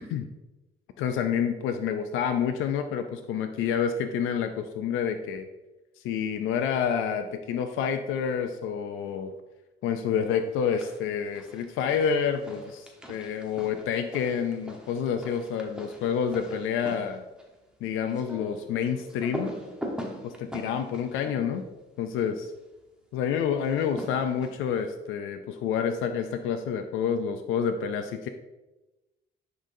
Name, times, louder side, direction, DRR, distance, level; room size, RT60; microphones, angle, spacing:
voice 1, 1.0-5.5 6.0-9.3 9.8-17.2 17.8-19.5 20.2-21.6 22.0-22.4 23.1-28.3, left 7 dB, 90° left, 7 dB, 0.4 m, -28 dB
sound 1, 10.5-11.1 11.3-22.4 23.6-24.8, equal, 5° right, 1.1 m, -42 dB
10.0 x 3.9 x 2.7 m, 1.1 s
cardioid pair, 90°, 20 cm